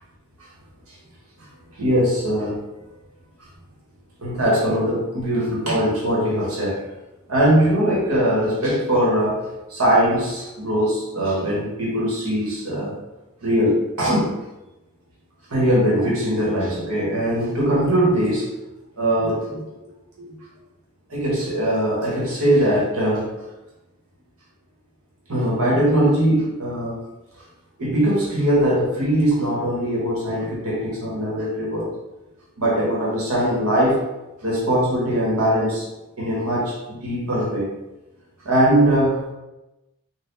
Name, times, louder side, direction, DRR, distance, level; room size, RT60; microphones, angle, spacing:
voice 1, 1.7-2.6 4.2-6.8 7.3-9.4 9.7-12.9 13.4-14.3 15.5-18.5 19.0-19.6 20.2-20.3 21.1-23.3 25.3-27.0 27.8-31.9 32.6-34.0 34.4-35.9 36.2-37.7 38.4-39.3, equal, 85° right, -5 dB, 1.4 m, -21 dB
4.1 x 2.4 x 4.0 m, 1.0 s
head